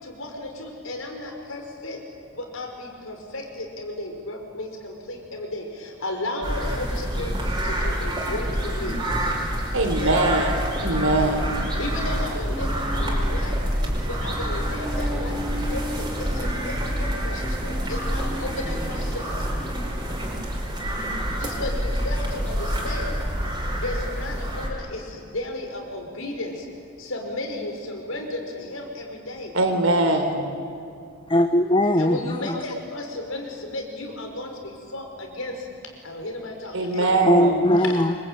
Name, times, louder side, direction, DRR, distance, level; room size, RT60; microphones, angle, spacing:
voice 1, 0.0-2.0 2.3-9.0 9.8-10.2 11.8-13.6 14.1-15.4 15.7-19.5 21.4-23.2 23.8-26.7 27.0-29.5 32.0-35.7 36.0-37.3, left 2 dB, 75° left, 3 dB, 5.3 m, -34 dB
sound 1, 6.4-24.7, equal, 20° right, 5.0 m, -27 dB
voice 2, 9.7-11.6 29.5-30.5 36.7-37.6, right 2 dB, 75° right, 5 dB, 4.1 m, -22 dB
sound 2, 12.5-21.4, equal, 5° right, 2.7 m, -37 dB
voice 3, 31.3-32.6 37.0-38.2, left 1 dB, 25° left, 7 dB, 0.9 m, -20 dB
26.5 x 24.5 x 9.1 m, 2.4 s
head